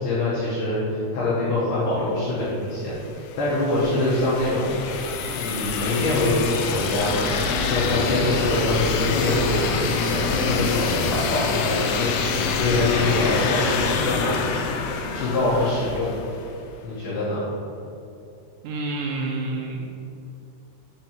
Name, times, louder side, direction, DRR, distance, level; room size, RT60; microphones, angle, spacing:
voice 1, 0.0-4.7 5.4-7.3 7.7-9.6 10.0-12.2 12.5-14.4 15.1-16.1 16.8-17.4, left 2 dB, 75° left, -8 dB, 2.4 m, -24 dB
sound 1, 2.8-16.6, left 4 dB, 90° left, 2.5 m, -26 dB
voice 2, 18.6-19.9, right 2 dB, 85° right, 0 dB, 2.7 m, -28 dB
8.1 x 3.4 x 4.4 m, 2.8 s
omnidirectional pair, 5.8 m